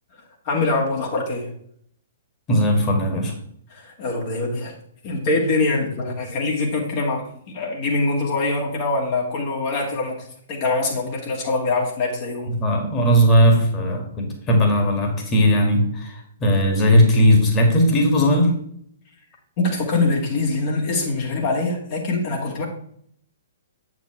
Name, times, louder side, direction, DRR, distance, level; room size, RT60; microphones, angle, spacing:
voice 1, 0.4-1.5 3.7-4.8 5.0-10.2 10.5-12.6 19.6-22.7, left 3 dB, 40° left, -1 dB, 2.0 m, -24 dB
voice 2, 2.5-3.3 12.6-18.5, equal, 20° left, 1 dB, 2.2 m, -18 dB
8.4 x 7.2 x 3.3 m, 0.66 s
figure-of-eight pair, 115°, 0 cm